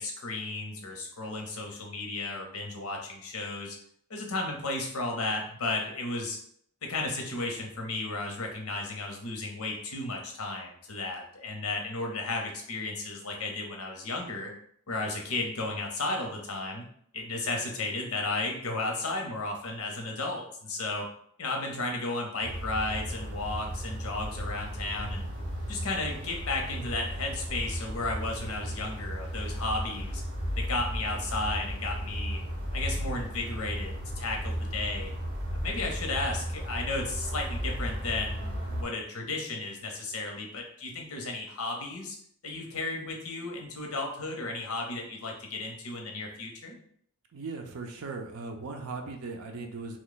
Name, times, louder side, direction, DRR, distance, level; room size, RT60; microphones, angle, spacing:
voice 1, 0.0-3.8 4.1-6.4 6.8-14.5 14.9-16.9 17.1-21.1 21.4-25.3 25.7-30.2 30.6-32.4 32.7-35.1 35.5-42.2 42.4-46.8, left 2 dB, 80° left, 2 dB, 0.8 m, -34 dB
sound 1, 22.4-38.8, equal, 55° right, 1.1 m, -35 dB
voice 2, 47.3-50.0, right 3 dB, 85° right, 3 dB, 0.5 m, -38 dB
3.1 x 2.3 x 3.9 m, 0.65 s
head